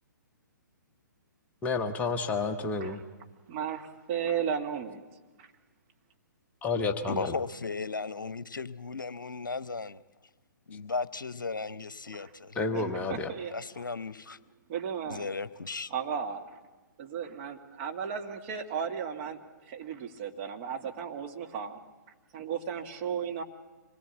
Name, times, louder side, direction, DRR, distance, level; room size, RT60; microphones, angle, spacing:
voice 1, 1.6-3.0 6.6-7.3 12.6-13.3, left 3 dB, 15° left, 1.1 m, -30 dB
voice 2, 3.5-5.0 5.4-5.5 12.2-12.3 12.7-13.6 14.7-15.3 15.9-16.6 17.0-19.4 19.7-21.8 22.3-23.4, right 7 dB, 35° right, 1.9 m, -35 dB
voice 3, 7.1-10.0 10.7-12.6 13.5-14.4 15.1-15.9, left 4 dB, 75° left, 0.8 m, -36 dB
26.0 x 20.0 x 8.4 m
figure-of-eight pair, 125°, 11 cm